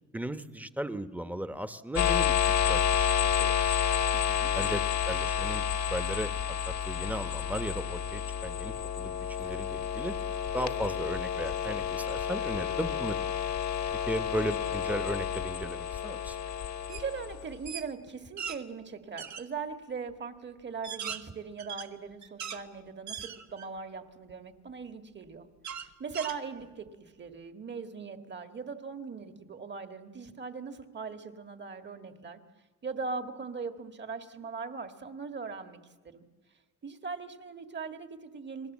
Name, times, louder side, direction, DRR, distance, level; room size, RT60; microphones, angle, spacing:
voice 1, 0.1-2.4 2.6-3.8 4.5-10.1 10.5-13.2 14.1-16.4, right 1 dB, 5° right, 10 dB, 1.2 m, -36 dB
sound 1, 2.0-17.7, left 8 dB, 70° left, 1.5 m, -30 dB
voice 2, 4.1-4.5 16.5-25.5 25.7-32.4 32.8-36.3 36.8-38.7, right 5 dB, 35° right, 7 dB, 1.9 m, -40 dB
sound 2, 16.9-17.1 17.4-18.6 19.2-19.5 20.1-20.2 20.7-22.6 23.1-23.8 24.3-24.4 25.6-26.9, right 8 dB, 65° right, 1.5 m, -39 dB
30.0 x 20.5 x 7.5 m, 1.3 s
cardioid pair, 90°, 30 cm